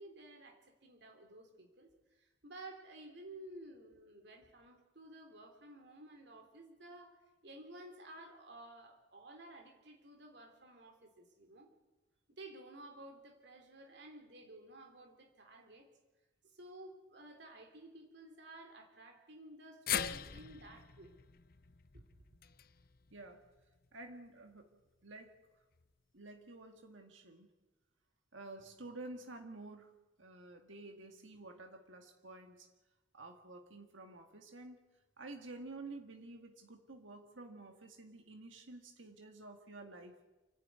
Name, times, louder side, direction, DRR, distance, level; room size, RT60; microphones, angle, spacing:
voice 1, 0.0-11.7 12.3-15.9 16.4-21.1 21.9-22.0, right 1 dB, 60° right, 3 dB, 3.2 m, -54 dB
sound 1, 19.9-24.1 24.5-24.6 25.7-25.8, left 9 dB, 50° left, 0.7 m, -42 dB
voice 2, 23.1-23.5 23.9-24.7 25.0-25.4 26.1-27.5 28.3-32.7 33.1-40.2, right 2 dB, 85° right, 4 dB, 1.9 m, -51 dB
29.0 x 11.0 x 9.5 m, 1.1 s
head